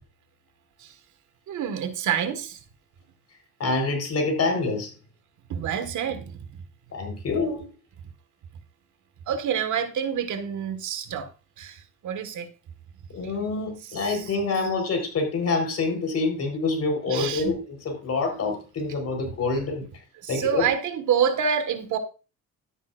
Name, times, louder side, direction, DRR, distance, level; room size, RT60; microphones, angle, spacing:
voice 1, 1.5-2.6 5.5-6.6 9.3-11.3 11.6-12.5 13.9-14.3 17.1-17.6 20.2-22.0, right 8 dB, 75° right, 8 dB, 1.8 m, -27 dB
voice 2, 3.6-4.9 6.9-7.7 13.1-19.9 20.3-20.7, left 3 dB, 55° left, 4 dB, 4.6 m, -26 dB
12.5 x 9.2 x 2.6 m, 0.32 s
cardioid pair, 90°, 30 cm